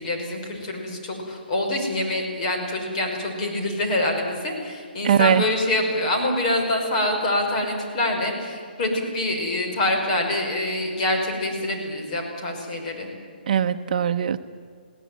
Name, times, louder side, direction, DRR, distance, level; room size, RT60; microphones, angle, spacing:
voice 1, 0.0-13.1, left 1 dB, 40° left, 2 dB, 5.9 m, -25 dB
voice 2, 5.0-5.4 13.5-14.4, right 8 dB, 50° right, 10 dB, 0.8 m, -20 dB
21.0 x 17.0 x 9.4 m, 2.1 s
hypercardioid pair, 150°, 6 cm